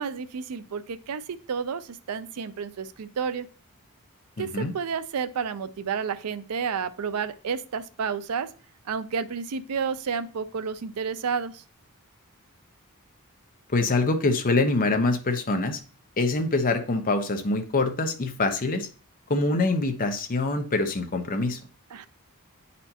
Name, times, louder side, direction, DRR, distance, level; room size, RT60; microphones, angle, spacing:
voice 1, 0.0-3.5 4.4-8.5 8.9-11.6 21.9-22.1, right 6 dB, 85° right, 14 dB, 0.5 m, -31 dB
voice 2, 4.4-4.7 13.7-15.8 16.2-18.9 19.3-21.6, left 2 dB, 40° left, 5 dB, 0.8 m, -25 dB
8.9 x 4.2 x 2.8 m, 0.39 s
head